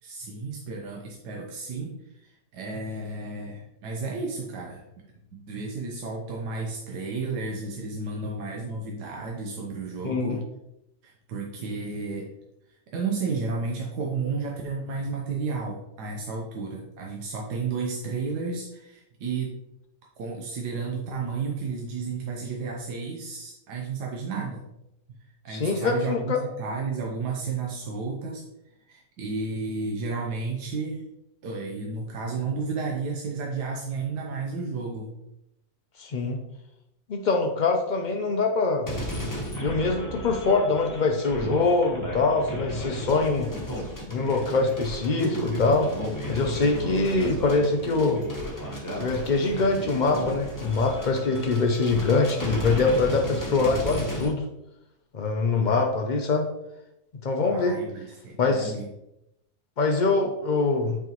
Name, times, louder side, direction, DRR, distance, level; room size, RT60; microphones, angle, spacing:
voice 1, 0.0-1.9 2.2-4.8 5.3-10.4 11.0-12.3 12.9-19.5 20.2-24.6 25.2-28.4 28.9-31.1 31.4-35.1 57.5-58.9, right 4 dB, 75° right, -1 dB, 1.4 m, -32 dB
voice 2, 10.0-10.4 25.5-26.4 36.0-36.4 37.1-38.9 39.6-43.5 44.1-45.9 46.3-48.2 49.0-54.4 55.1-56.5 57.2-57.8 58.4-58.7 59.8-61.0, left 3 dB, 90° left, 2 dB, 0.4 m, -24 dB
sound 1, 38.9-54.3, equal, 15° left, 1.0 m, -33 dB
8.1 x 4.7 x 3.0 m, 0.85 s
omnidirectional pair, 1.8 m